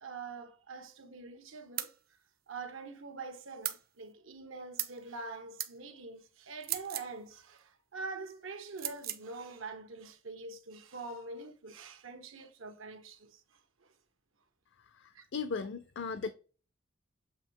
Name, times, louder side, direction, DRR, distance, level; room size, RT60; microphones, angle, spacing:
voice 1, 0.0-1.9 2.5-13.4 13.8-13.9 15.1-15.3, right 3 dB, 80° right, 1.1 m, -45 dB
sound 1, 1.8-2.0 3.6-3.8 4.8-5.0 5.6-5.7 6.6-7.1 8.8-9.2, right 12 dB, 50° right, 0.7 m, -36 dB
voice 2, 15.0-16.3, left 5 dB, 60° left, 0.5 m, -37 dB
7.7 x 2.8 x 4.5 m
head